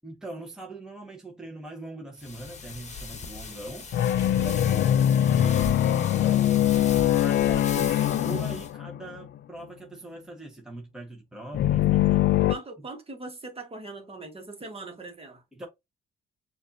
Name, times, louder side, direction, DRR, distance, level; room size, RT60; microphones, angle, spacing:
voice 1, 0.0-3.9 4.3-5.9 7.0-12.5 15.5-15.7, right 2 dB, 5° right, 1.0 m, -41 dB
sound 1, 2.2-8.7, left 4 dB, 35° left, 1.1 m, -39 dB
sound 2, 3.9-9.4 11.5-12.6, left 11 dB, 60° left, 0.4 m, -22 dB
voice 2, 4.7-5.0 12.5-15.7, right 3 dB, 30° right, 1.5 m, -41 dB
6.3 x 2.5 x 2.6 m
cardioid pair, 90°, 20 cm